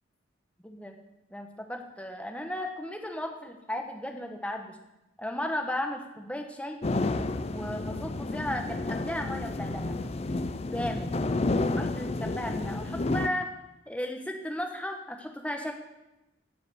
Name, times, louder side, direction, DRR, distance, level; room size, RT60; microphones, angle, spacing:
voice 1, 0.6-1.0 1.3-4.8 5.2-6.8 7.5-10.1 10.7-11.1 11.7-13.5 13.9-15.7, left 1 dB, 5° left, 3 dB, 1.1 m, -35 dB
sound 1, 6.8-13.3, left 2 dB, 30° left, 0.5 m, -30 dB
15.5 x 5.2 x 7.0 m, 0.95 s
head